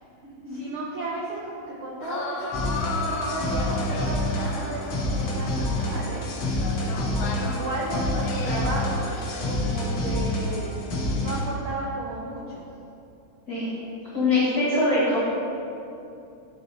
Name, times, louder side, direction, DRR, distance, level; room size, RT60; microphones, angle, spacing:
voice 1, 0.5-6.3 7.2-9.1 9.4-12.7 14.3-14.4, right 2 dB, 85° right, -5 dB, 1.1 m, -34 dB
sound 1, 2.0-10.1, left 3 dB, 75° left, 2.0 m, -35 dB
sound 2, 2.5-11.4, left 1 dB, 60° left, 1.2 m, -28 dB
voice 2, 14.1-15.2, left 2 dB, 40° left, -8 dB, 1.6 m, -23 dB
9.4 x 4.2 x 4.1 m, 2.7 s
omnidirectional pair, 3.4 m